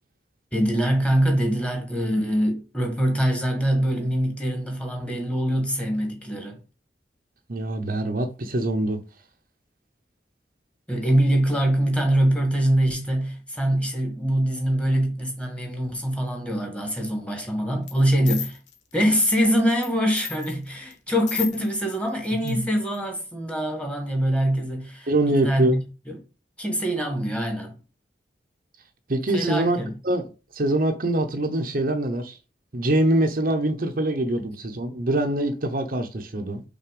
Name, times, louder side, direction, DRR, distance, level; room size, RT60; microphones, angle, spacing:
voice 1, 0.5-6.6 10.9-18.6 18.9-26.2 26.6-27.7 29.3-29.9, equal, 5° left, 1.6 m, -24 dB
voice 2, 7.5-9.0 22.4-22.6 25.1-25.8 29.1-29.8 30.0-30.3 30.5-32.4 32.7-36.6, right 1 dB, 50° right, 0.8 m, -24 dB
sound 1, 17.9-18.0 18.3-19.9 20.2-22.0 22.2-22.5 22.9-23.0, left 10 dB, 85° left, 1.2 m, -34 dB
5.8 x 4.2 x 5.1 m
head